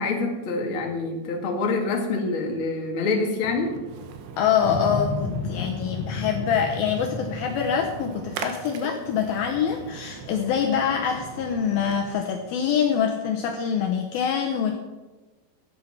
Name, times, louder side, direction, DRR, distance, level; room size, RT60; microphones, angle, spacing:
voice 1, 0.0-3.7, left 3 dB, 50° left, 1 dB, 1.5 m, -26 dB
Splash splatter, 3.4-12.1, right 6 dB, 70° right, 3.0 m, -40 dB
voice 2, 4.4-14.8, left 7 dB, 90° left, 2 dB, 2.1 m, -25 dB
sound 1, 4.6-8.9, left 4 dB, 65° left, 2.9 m, -32 dB
14.0 x 9.7 x 5.8 m, 1.2 s
omnidirectional pair, 5.7 m